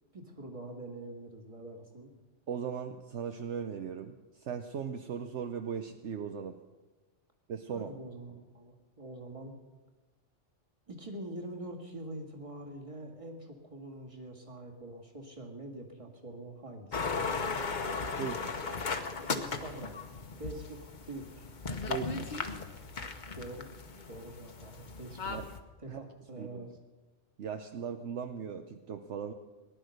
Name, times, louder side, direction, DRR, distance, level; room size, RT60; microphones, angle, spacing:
voice 1, 0.1-2.1 7.7-9.6 10.9-17.1 18.2-18.5 19.3-20.0 20.4-21.5 23.3-23.7 24.1-25.2 25.8-26.8, right 1 dB, 25° right, 2 dB, 2.1 m, -45 dB
voice 2, 2.5-6.6 7.5-7.9 18.2-18.4 21.9-22.3 25.3-25.4 25.9-26.0 26.4-26.7 27.4-29.3, right 7 dB, 70° right, 7 dB, 1.0 m, -38 dB
sound 1, 16.9-25.6, left 4 dB, 40° left, 1.1 m, -37 dB
18.5 x 11.0 x 6.5 m, 1.2 s
omnidirectional pair, 1.3 m